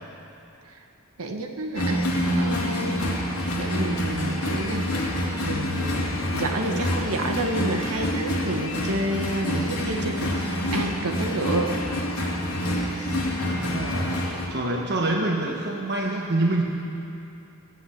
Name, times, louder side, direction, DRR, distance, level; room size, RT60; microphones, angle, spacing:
voice 1, 1.2-2.1 2.3-3.2 3.5-4.9 5.4-10.3 10.7-11.8 12.2-12.4 12.9-13.3, right 1 dB, 80° right, 3 dB, 1.4 m, -29 dB
sound 1, 1.7-14.5, equal, 80° left, 2.3 m, -27 dB
voice 2, 13.4-14.1 14.5-16.6, right 2 dB, 50° right, 0 dB, 1.3 m, -26 dB
16.0 x 7.8 x 8.6 m, 2.7 s
head